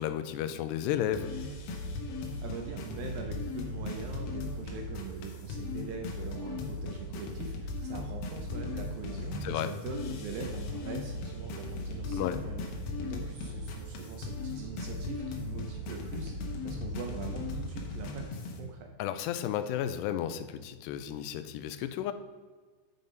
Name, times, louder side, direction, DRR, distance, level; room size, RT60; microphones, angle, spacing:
voice 1, 0.0-1.3 9.4-9.7 12.1-12.4 19.0-22.1, left 10 dB, 85° left, 10 dB, 2.7 m, -33 dB
sound 1, 1.1-18.6, left 2 dB, 70° left, 3.0 m, -37 dB
voice 2, 2.3-18.9, right 4 dB, 75° right, 3 dB, 2.2 m, -42 dB
9.6 x 5.4 x 5.2 m, 1.4 s
omnidirectional pair, 4.8 m